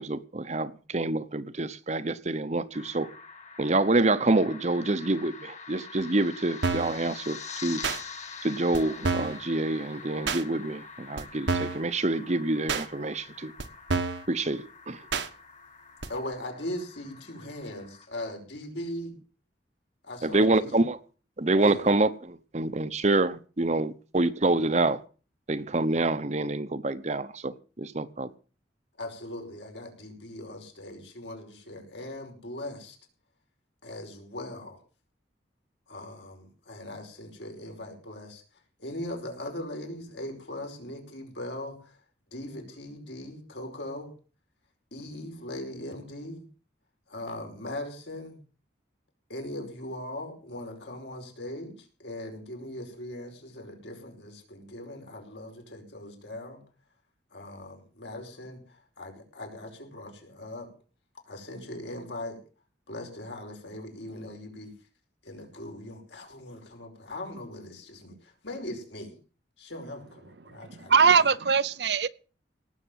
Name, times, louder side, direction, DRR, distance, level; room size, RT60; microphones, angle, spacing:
voice 1, 0.0-3.1 3.6-7.8 8.4-13.5 14.3-15.0 20.2-21.0 21.4-25.0 25.5-28.3, right 2 dB, 40° right, 0.9 m, -27 dB
sound 1, 2.7-18.1, left 5 dB, 40° left, 2.1 m, -45 dB
sound 2, 6.6-7.0 7.8-8.0 8.7-8.8 9.0-9.4 10.3-10.4 11.2-11.3 11.5-11.8 12.7-12.8 13.6-13.7 13.9-14.2 15.1-15.3 16.0-16.1, right 4 dB, 80° right, 1.5 m, -28 dB
voice 2, 16.1-19.2 20.0-20.8 21.6-21.9 29.0-33.0 33.8-34.8 35.9-38.4 38.8-42.0 42.3-44.1 44.9-46.5 47.1-48.4 49.3-56.6 57.3-60.7 61.3-62.4 62.9-64.7 65.2-69.2 69.6-70.9, left 1 dB, 75° left, 5.2 m, -40 dB
voice 3, 70.5-72.1, right 6 dB, 65° right, 0.7 m, -22 dB
18.5 x 7.4 x 7.5 m
head